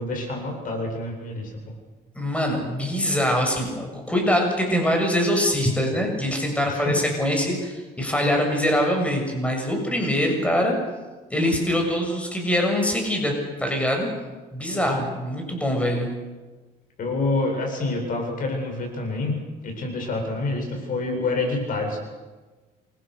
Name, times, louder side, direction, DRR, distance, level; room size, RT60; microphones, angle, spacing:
voice 1, 0.0-1.5 6.6-7.1 14.7-15.1 17.0-19.3 19.6-22.0, left 2 dB, 55° left, 3 dB, 8.0 m, -27 dB
voice 2, 2.2-10.8 11.3-13.3 13.6-14.1 14.5-16.1, equal, 5° left, 2 dB, 7.1 m, -23 dB
29.0 x 24.0 x 6.6 m, 1.3 s
cardioid pair, 110°, 17 cm